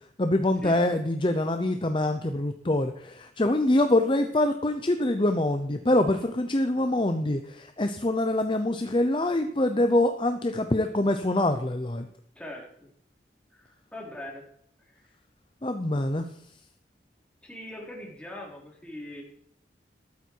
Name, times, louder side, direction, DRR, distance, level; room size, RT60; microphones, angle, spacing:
voice 1, 0.2-12.1 15.6-16.3, left 1 dB, 30° left, 7 dB, 0.7 m, -25 dB
voice 2, 12.4-12.9 13.5-14.5 17.4-19.2, left 1 dB, 5° left, -2 dB, 3.7 m, -41 dB
14.0 x 12.0 x 4.7 m, 0.67 s
head